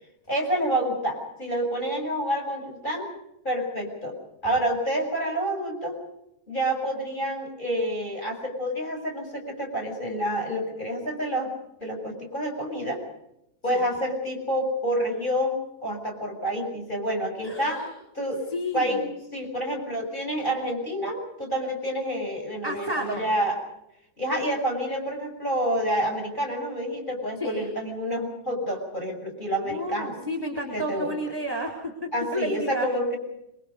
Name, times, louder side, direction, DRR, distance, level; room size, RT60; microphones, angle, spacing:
voice 1, 0.3-3.1 3.4-4.2 4.4-6.0 6.5-11.5 11.8-13.0 13.6-17.8 18.1-18.4 18.7-23.6 24.2-30.2 30.7-31.1 32.1-33.2, equal, 10° left, 2 dB, 6.7 m, -28 dB
voice 2, 17.4-17.9 18.5-19.0 22.6-23.3 27.4-27.7 29.6-32.9, equal, 5° right, 2 dB, 3.4 m, -31 dB
27.0 x 23.5 x 5.3 m, 0.82 s
omnidirectional pair, 4.3 m